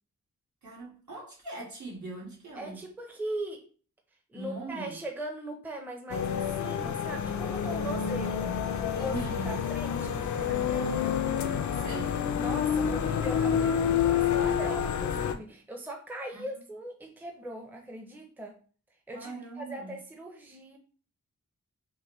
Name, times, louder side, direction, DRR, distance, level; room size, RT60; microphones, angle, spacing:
voice 1, 0.6-2.8 4.3-5.0 8.9-9.6 11.7-12.3 16.3-16.4 19.1-19.9, right 3 dB, 70° right, 1.9 m, -40 dB
voice 2, 2.6-3.6 4.3-8.5 9.0-9.1 9.5-11.2 12.4-18.6 19.1-20.8, right 1 dB, 5° right, 0.6 m, -40 dB
sound 1, 6.1-15.3, left 8 dB, 70° left, 0.4 m, -28 dB
4.7 x 2.1 x 3.0 m
wide cardioid pair, 95°, 30 cm